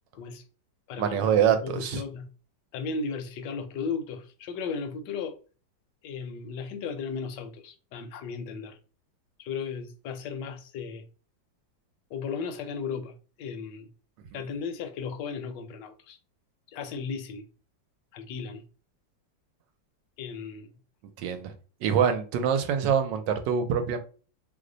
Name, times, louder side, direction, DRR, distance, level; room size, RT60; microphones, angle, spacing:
voice 1, 0.1-0.4 0.9-2.3 2.7-5.4 6.0-8.8 9.4-11.0 12.1-13.9 14.3-16.2 16.7-17.5 18.1-18.6 20.2-20.7, left 5 dB, 70° left, 1.1 m, -35 dB
voice 2, 1.0-2.0 21.2-21.5 21.8-24.0, right 8 dB, 75° right, 1.2 m, -25 dB
3.1 x 2.1 x 3.7 m
omnidirectional pair, 2.0 m